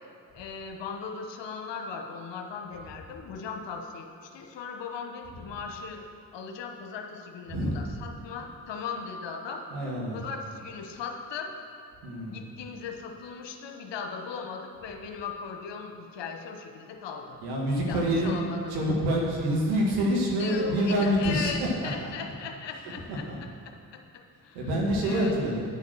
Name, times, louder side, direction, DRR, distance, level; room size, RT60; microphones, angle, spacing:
voice 1, 0.3-6.0 6.3-9.6 10.1-11.5 12.3-17.4 17.7-18.8 20.4-25.3, left 5 dB, 65° left, 4 dB, 1.3 m, -38 dB
voice 2, 7.5-7.9 9.7-10.2 12.0-12.5 17.4-18.4 18.7-21.5 23.1-23.4 24.5-25.6, equal, 85° right, -2 dB, 1.9 m, -26 dB
10.0 x 6.9 x 6.3 m, 2.4 s
hypercardioid pair, 45°, 47 cm